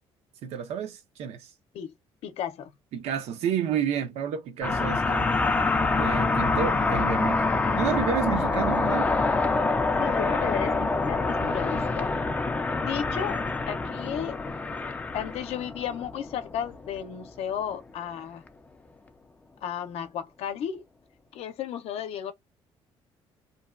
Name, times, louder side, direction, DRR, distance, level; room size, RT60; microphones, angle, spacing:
voice 1, 0.4-1.5 2.9-5.4 6.0-9.1, right 8 dB, 85° right, 0.7 m, -30 dB
voice 2, 2.2-2.7 10.0-12.1 12.8-13.4 13.7-14.4 15.1-18.4 19.6-20.8 21.3-22.3, left 9 dB, 75° left, 0.6 m, -33 dB
sound 1, 4.6-17.3, left 3 dB, 15° left, 0.3 m, -26 dB
2.7 x 2.2 x 2.3 m
cardioid pair, 160°, 11 cm